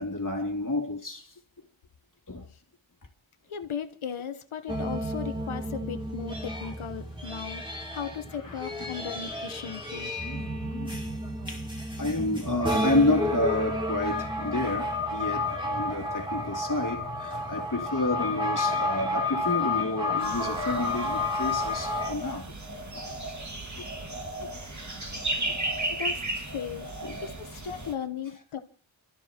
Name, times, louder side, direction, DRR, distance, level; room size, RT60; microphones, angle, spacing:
voice 1, 0.0-1.6 2.3-2.5 8.4-8.9 10.2-11.1 11.5-11.7 12.0-22.5 23.1-23.2 23.7-23.9 24.4-24.5 25.5-25.6 27.0-27.2, left 2 dB, 40° left, 2.8 m, -30 dB
voice 2, 3.5-7.6 7.9-10.2 25.9-26.9 27.2-28.6, left 7 dB, 90° left, 1.1 m, -37 dB
sound 1, 4.7-22.1, left 2 dB, 10° right, 3.0 m, -31 dB
sound 2, 20.2-27.9, right 1 dB, 35° right, 2.1 m, -34 dB
28.0 x 13.0 x 2.9 m
cardioid pair, 40°, 47 cm